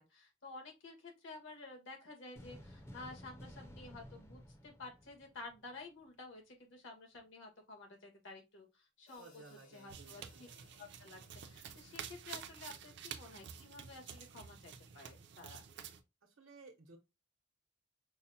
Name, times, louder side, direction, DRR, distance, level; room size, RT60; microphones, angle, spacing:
voice 1, 0.0-9.3 9.7-10.5 10.8-15.6, left 3 dB, 70° left, 1.3 m, -52 dB
sound 1, 2.4-5.8, equal, 15° left, 0.5 m, -54 dB
Hi-hat, 9.1-13.2, left 4 dB, 90° left, 1.5 m, -68 dB
voice 2, 9.2-10.4 16.2-17.0, right 3 dB, 85° right, 0.9 m, -57 dB
sound 2, 9.9-16.0, right 8 dB, 60° right, 0.4 m, -50 dB
5.5 x 2.1 x 2.7 m
head